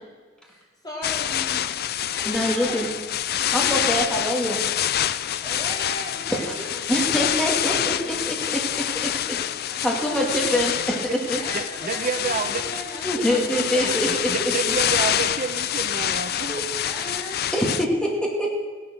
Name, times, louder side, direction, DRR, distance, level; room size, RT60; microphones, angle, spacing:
voice 1, 0.4-1.7 2.1-2.9 5.0-7.8 8.7-9.9 11.3-14.0 16.7-17.5, equal, 20° left, -3 dB, 4.1 m, -38 dB
sound 1, 1.0-17.9, left 11 dB, 50° left, 0.4 m, -26 dB
voice 2, 2.3-2.9 3.5-4.6 6.3-6.4 6.9-8.6 9.0-9.1 9.8-11.0 11.3-11.4 13.0-14.1 14.4-14.7 16.5-16.6 17.5-18.5, equal, 5° left, -1 dB, 2.5 m, -24 dB
voice 3, 11.5-12.7 13.8-16.6, right 5 dB, 40° right, 7 dB, 0.8 m, -29 dB
16.0 x 11.0 x 6.4 m, 1.5 s
head